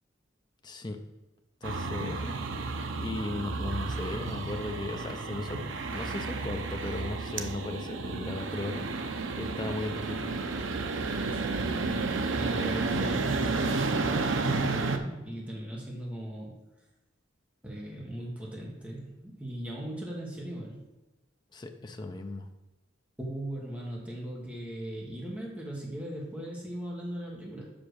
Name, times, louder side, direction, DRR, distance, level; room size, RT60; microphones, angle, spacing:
voice 1, 0.6-1.0 1.6-2.3 3.0-5.6 5.9-8.9 9.4-10.3 21.5-22.5, left 2 dB, 20° left, 5 dB, 0.6 m, -36 dB
sound 1, 1.6-15.0, right 3 dB, 80° right, 0.7 m, -32 dB
voice 2, 11.3-16.5 17.6-20.8 23.2-27.6, right 1 dB, 5° right, -3 dB, 1.5 m, -38 dB
5.7 x 5.2 x 6.3 m, 1.1 s
head